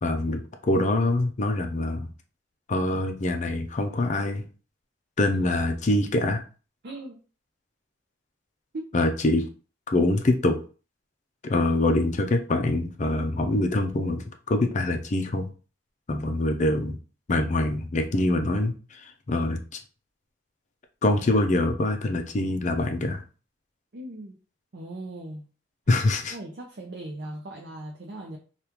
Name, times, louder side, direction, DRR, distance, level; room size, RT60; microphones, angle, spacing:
voice 1, 0.0-2.1 2.7-4.4 5.2-6.4 8.9-9.5 9.9-10.6 11.4-15.4 16.1-17.0 17.3-19.6 21.0-23.2 25.9-26.4, left 2 dB, 40° left, 5 dB, 0.5 m, -24 dB
voice 2, 6.8-7.2 8.7-8.9 23.9-24.4 24.7-25.5 26.3-28.4, right 1 dB, 60° right, 1 dB, 0.5 m, -38 dB
3.5 x 2.4 x 2.9 m, 0.36 s
head